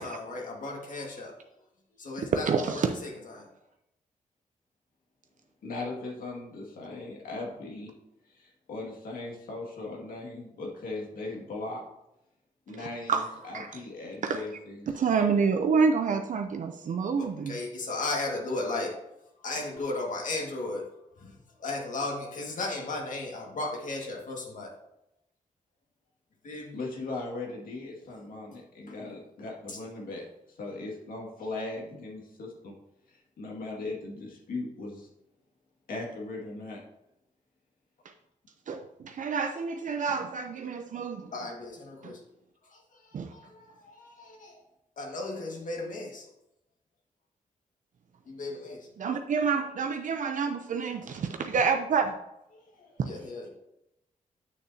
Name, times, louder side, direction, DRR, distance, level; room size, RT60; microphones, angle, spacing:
voice 1, 0.0-1.3 2.0-3.1 3.4-3.5 17.2-18.9 19.4-20.8 21.2-21.3 21.6-24.7 26.4-26.8 29.7-29.8 41.3-42.2 42.7-44.6 45.0-46.3 48.3-48.9 53.0-53.5, left 2 dB, 65° left, -1 dB, 1.9 m, -35 dB
voice 2, 2.3-2.9 12.7-13.8 14.3-14.4 14.9-17.6 38.7-41.3 42.0-42.1 43.1-43.3 49.0-52.1, right 5 dB, 65° right, 5 dB, 0.6 m, -28 dB
voice 3, 5.6-7.9 8.3-11.8 12.7-14.9 26.7-30.2 30.6-32.8 33.1-35.1 35.9-36.8, left 2 dB, 90° left, -2 dB, 2.1 m, -38 dB
8.4 x 6.7 x 2.8 m, 0.86 s
wide cardioid pair, 120°, 14 cm